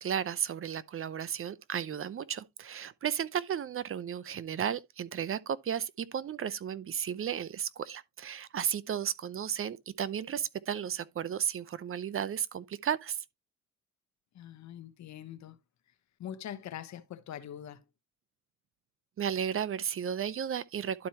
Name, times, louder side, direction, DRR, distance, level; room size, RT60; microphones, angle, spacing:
voice 1, 0.0-13.2 19.2-21.1, right 8 dB, 45° right, 0.7 m, -34 dB
voice 2, 14.3-15.6 16.2-17.8, left 10 dB, 65° left, 1.0 m, -43 dB
12.0 x 4.5 x 2.8 m
cardioid pair, 90°, 30 cm